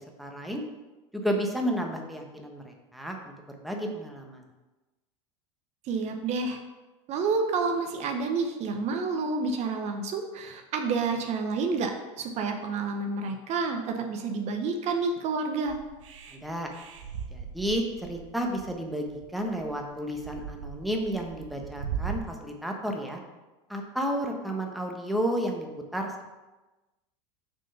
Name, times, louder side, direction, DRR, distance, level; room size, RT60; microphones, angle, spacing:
voice 1, 0.2-0.6 1.1-3.3 3.6-4.4 16.3-16.7 17.3-23.2 23.7-26.1, equal, ahead, 1 dB, 1.0 m, -32 dB
voice 2, 5.8-6.6 7.1-11.9 12.2-15.8, right 4 dB, 45° right, 5 dB, 0.9 m, -29 dB
sound 1, 15.7-22.2, right 8 dB, 85° right, 0.9 m, -39 dB
6.0 x 4.5 x 5.6 m, 1.1 s
hypercardioid pair, 100°, 16 cm